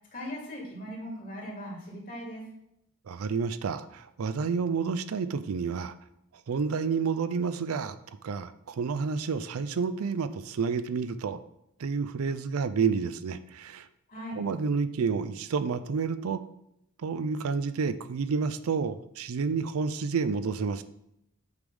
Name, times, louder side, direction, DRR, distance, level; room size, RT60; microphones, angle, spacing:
voice 1, 0.0-2.4 14.1-14.4, equal, 40° left, -2 dB, 2.4 m, -39 dB
voice 2, 3.1-5.9 6.5-8.0 8.2-11.4 11.8-13.9 14.4-16.4 17.0-20.8, right 5 dB, 70° right, 13 dB, 0.4 m, -30 dB
8.1 x 3.4 x 5.3 m, 0.79 s
head